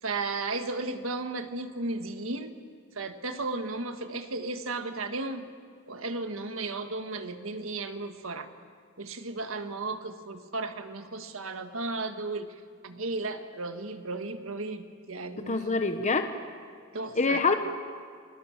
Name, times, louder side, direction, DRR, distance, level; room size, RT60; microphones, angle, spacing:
voice 1, 0.0-2.5 3.0-5.5 5.9-8.5 9.0-12.5 12.8-15.8 16.9-17.4, right 3 dB, 80° right, 7 dB, 1.6 m, -34 dB
voice 2, 15.5-16.3 17.1-17.5, left 3 dB, 35° left, 7 dB, 1.0 m, -25 dB
30.0 x 21.0 x 7.4 m, 2.1 s
head